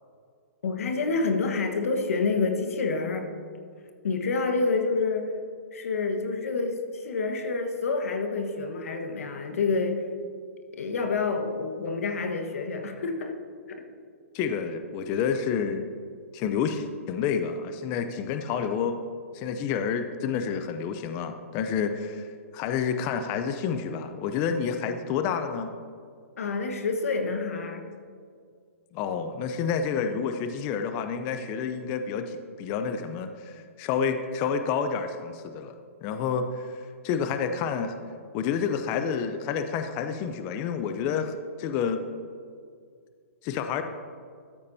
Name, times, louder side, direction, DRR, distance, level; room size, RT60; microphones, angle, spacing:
voice 1, 0.6-3.3 4.0-5.3 5.7-10.0 10.7-13.3 13.7-13.8 26.4-27.8, left 4 dB, 75° left, 5 dB, 1.3 m, -28 dB
voice 2, 14.3-15.9 16.3-19.0 19.3-22.3 22.5-25.7 28.9-35.7 36.0-38.0 38.3-42.0 43.4-43.8, left 6 dB, 30° left, 8 dB, 0.5 m, -29 dB
13.0 x 8.5 x 2.7 m, 2.2 s
hypercardioid pair, 145°, 8 cm